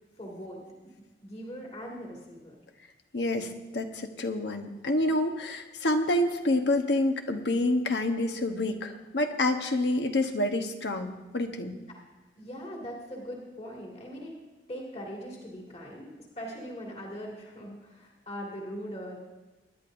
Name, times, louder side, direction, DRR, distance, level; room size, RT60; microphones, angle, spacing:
voice 1, 0.2-0.6 1.2-2.5 12.4-14.3 14.7-19.2, equal, 35° left, -2 dB, 2.2 m, -40 dB
voice 2, 3.1-11.8, left 1 dB, 75° left, 6 dB, 1.1 m, -28 dB
24.0 x 11.0 x 2.6 m, 1.2 s
head